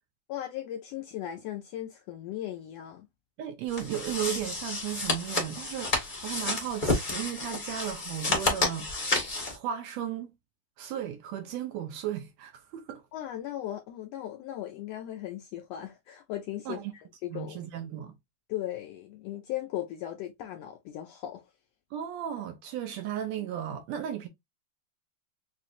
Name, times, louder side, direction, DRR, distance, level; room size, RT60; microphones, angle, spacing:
voice 1, 0.3-3.1 13.1-16.8 17.2-17.6 18.5-21.4, left 12 dB, 85° left, 1.5 m, -37 dB
voice 2, 3.4-8.9 9.5-10.3 10.8-13.0 16.6-16.9 17.3-18.2 21.9-24.3, right 10 dB, 75° right, 1.6 m, -35 dB
sound 1, 3.7-9.6, left 2 dB, 45° left, 0.6 m, -30 dB
5.9 x 2.5 x 2.5 m
omnidirectional pair, 3.5 m